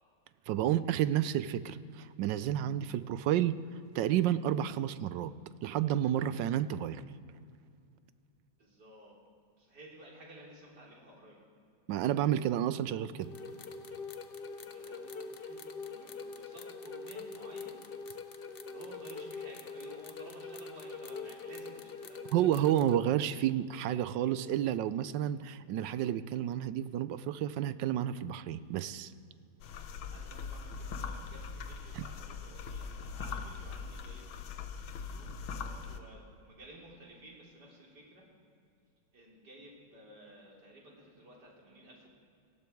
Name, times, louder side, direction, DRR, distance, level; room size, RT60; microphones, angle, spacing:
voice 1, 0.5-3.6 3.9-5.3 5.6-7.0 11.9-13.3 22.3-29.1 31.9-32.1, right 11 dB, 75° right, 15 dB, 1.2 m, -30 dB
voice 2, 8.6-9.2 9.6-11.4 14.5-17.8 18.6-22.4 30.1-38.3 39.1-42.1, right 1 dB, 55° right, -4 dB, 4.2 m, -54 dB
sound 1, 13.2-23.0, left 4 dB, 65° left, 0.5 m, -44 dB
sound 2, 29.6-36.0, left 5 dB, 85° left, 1.7 m, -41 dB
19.0 x 15.0 x 4.6 m, 2.5 s
omnidirectional pair, 2.2 m